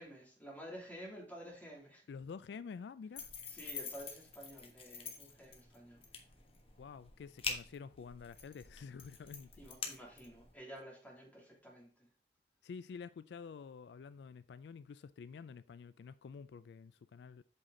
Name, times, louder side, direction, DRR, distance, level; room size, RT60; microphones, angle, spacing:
voice 1, 0.0-2.1 3.5-6.0 9.6-11.9, equal, 10° left, 2.7 m, -51 dB
voice 2, 2.1-3.3 6.8-9.6 12.6-17.4, left 5 dB, 70° left, 0.3 m, -49 dB
sound 1, 3.1-10.5, left 5 dB, 35° left, 1.3 m, -46 dB
8.0 x 5.7 x 3.8 m
head